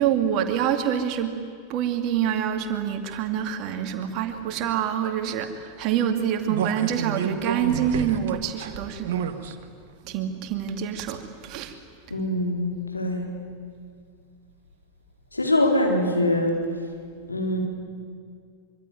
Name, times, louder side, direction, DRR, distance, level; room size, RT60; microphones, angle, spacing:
voice 1, 0.0-1.3 1.7-9.2 10.1-11.8, right 9 dB, 40° right, 6 dB, 2.5 m, -26 dB
sound 1, 6.5-9.5 10.0-10.1, right 8 dB, 55° right, 1.8 m, -29 dB
voice 2, 12.1-13.3 15.3-16.6 17.3-17.6, left 1 dB, 80° left, 1 dB, 4.5 m, -23 dB
25.0 x 24.5 x 9.5 m, 2.2 s
figure-of-eight pair, 90°, 0 cm